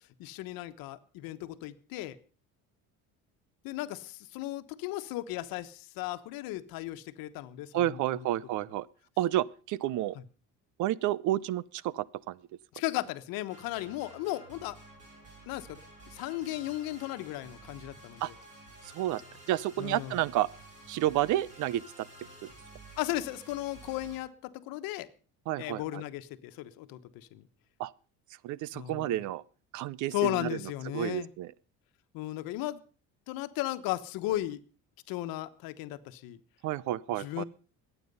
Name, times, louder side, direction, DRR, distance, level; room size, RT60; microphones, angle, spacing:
voice 1, 0.2-2.2 3.6-8.3 10.1-10.2 12.7-14.8 15.5-15.8 16.1-18.4 19.8-20.2 23.0-25.1 25.6-27.5 28.7-29.2 30.1-31.3 32.1-32.8 33.3-34.6 35.1-36.4 37.2-37.4, left 15 dB, 75° left, 1.2 m, -36 dB
voice 2, 7.7-8.9 9.2-10.2 10.8-12.4 18.2-18.3 18.9-19.2 19.5-20.5 20.9-21.8 22.4-22.5 25.5-26.0 27.8-27.9 28.4-29.4 29.7-30.5 30.9-31.5 36.6-37.4, right 14 dB, 60° right, 0.6 m, -30 dB
sound 1, 13.5-24.2, right 1 dB, 20° right, 7.3 m, -52 dB
22.0 x 9.2 x 5.4 m
cardioid pair, 155°, 34 cm